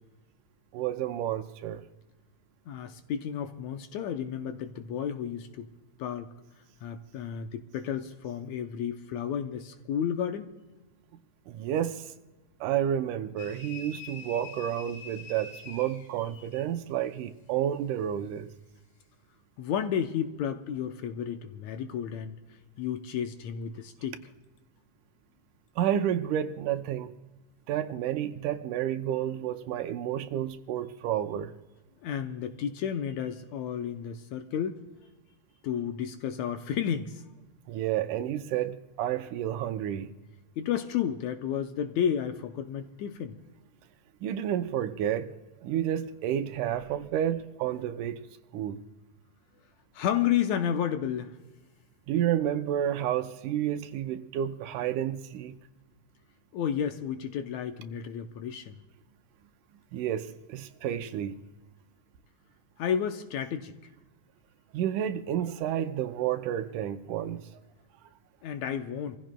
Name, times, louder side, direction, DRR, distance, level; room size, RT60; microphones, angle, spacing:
voice 1, 0.7-1.8 11.5-12.1 12.6-18.5 25.8-27.1 27.7-31.5 37.7-40.1 44.2-45.3 45.6-48.3 48.5-48.8 52.1-55.6 59.9-61.4 64.7-67.5, right 10 dB, 80° right, 2.1 m, -30 dB
voice 2, 2.7-5.7 6.0-6.3 6.8-10.5 19.6-22.4 22.8-24.2 32.0-34.8 35.6-37.2 40.6-43.3 49.9-51.4 56.5-58.7 62.8-63.7 68.4-69.2, left 9 dB, 75° left, 1.8 m, -32 dB
sound 1, 13.4-16.7, left 4 dB, 50° left, 3.6 m, -45 dB
27.5 x 15.0 x 2.2 m
omnidirectional pair, 3.7 m